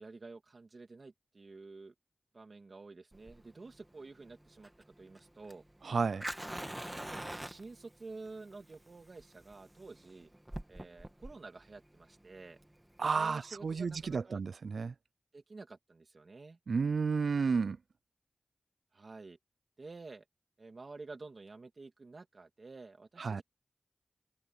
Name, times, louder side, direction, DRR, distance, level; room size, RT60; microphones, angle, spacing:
voice 1, 0.0-1.9 2.3-4.7 5.0-5.6 6.9-10.3 10.7-12.6 13.2-14.4 15.3-16.6 18.9-19.4 19.8-20.2 20.6-23.4, right 3 dB, 65° right, 2.5 m, -50 dB
Fire, 3.1-14.2, right 1 dB, 15° right, 2.0 m, -46 dB
voice 2, 5.8-6.3 13.0-14.9 16.7-17.8 23.2-23.4, right 5 dB, 85° right, 0.4 m, -32 dB
cardioid pair, 45°, 0 cm